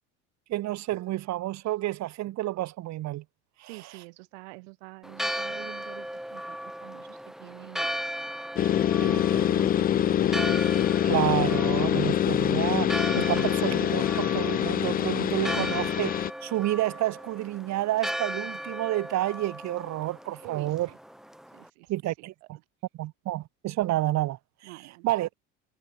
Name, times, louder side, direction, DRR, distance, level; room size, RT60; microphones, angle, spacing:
voice 1, 0.5-3.2 3.6-3.7 11.0-16.1 16.4-20.9 21.9-22.3 22.9-24.4 24.6-24.7 25.0-25.3, right 15 dB, 55° right, 1.6 m, -29 dB
voice 2, 3.7-7.9 9.0-10.4 15.5-15.9 20.4-21.0 21.5-22.5 24.6-25.1, right 32 dB, 75° right, 2.9 m, -46 dB
Church bell, 5.0-21.7, equal, ahead, 1.5 m, -37 dB
sound 1, 8.6-16.3, left 11 dB, 25° left, 0.4 m, -25 dB
hypercardioid pair, 80°, 34 cm